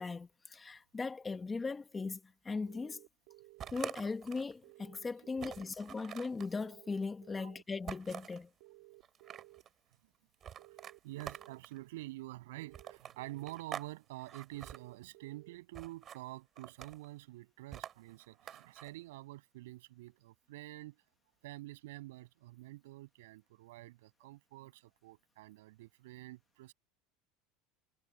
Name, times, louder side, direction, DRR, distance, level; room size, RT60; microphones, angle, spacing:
voice 1, 0.0-3.0 3.7-8.5, left 4 dB, 15° left, 1.4 m, -39 dB
sound 1, 2.7-3.7 4.6-5.6 6.6-7.6 8.6-9.6 10.6-11.6 12.6-13.6 14.5-15.6, right 22 dB, 70° right, 2.0 m, -58 dB
sound 2, 3.6-4.5 4.9-5.0 5.4-6.5 7.9-8.4 9.0-9.7 10.4-11.8 12.7-13.9 14.2-14.8 15.7-16.2 16.6-17.1 17.7-18.9, right 9 dB, 30° right, 3.9 m, -46 dB
voice 2, 11.0-21.0 21.4-26.7, right 18 dB, 90° right, 6.8 m, -48 dB
supercardioid pair, 150°, 0 cm